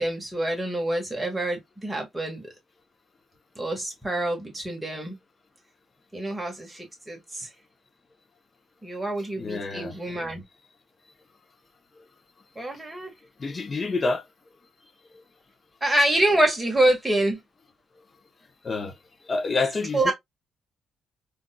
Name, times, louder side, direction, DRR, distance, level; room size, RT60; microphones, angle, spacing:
voice 1, 0.0-2.4 3.6-5.2 6.1-7.5 8.8-10.4 12.5-13.1 15.8-17.4 19.9-20.1, right 1 dB, 10° right, 1.5 m, -26 dB
voice 2, 9.4-10.0 13.4-14.3 15.1-15.2 18.6-18.9 19.2-20.1, left 3 dB, 35° left, 0.8 m, -28 dB
3.9 x 2.6 x 2.2 m
cardioid pair, 90°, 0 cm